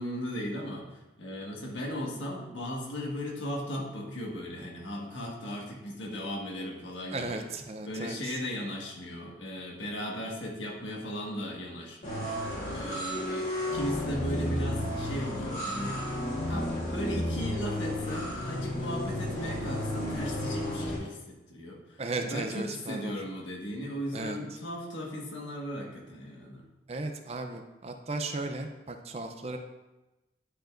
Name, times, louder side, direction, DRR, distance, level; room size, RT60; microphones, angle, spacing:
voice 1, 0.0-7.5 7.8-16.2 16.5-26.7, equal, 85° left, -1 dB, 1.5 m, -37 dB
voice 2, 7.1-8.4 22.0-23.2 24.1-24.4 26.9-29.6, right 2 dB, 35° right, 6 dB, 0.5 m, -36 dB
sound 1, 12.0-21.0, left 1 dB, 45° left, 1.5 m, -32 dB
10.0 x 5.1 x 2.5 m, 1.0 s
head